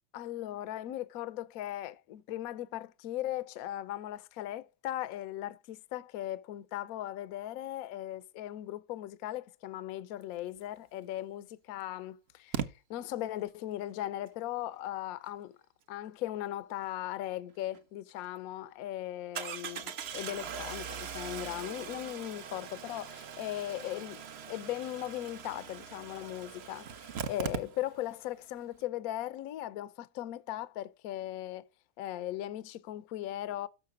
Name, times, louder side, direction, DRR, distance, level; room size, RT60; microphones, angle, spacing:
voice 1, 0.1-12.6 12.9-15.6 15.9-24.2 24.5-31.7 32.0-33.7, left 13 dB, 75° left, 0.8 m, -38 dB
Engine starting, 11.0-11.1 12.5-12.7 17.7-17.8 18.2-18.3 19.3-28.2 28.4-28.5 28.7-28.8, right 7 dB, 85° right, 0.5 m, -40 dB
6.6 x 6.5 x 7.2 m
omnidirectional pair, 2.2 m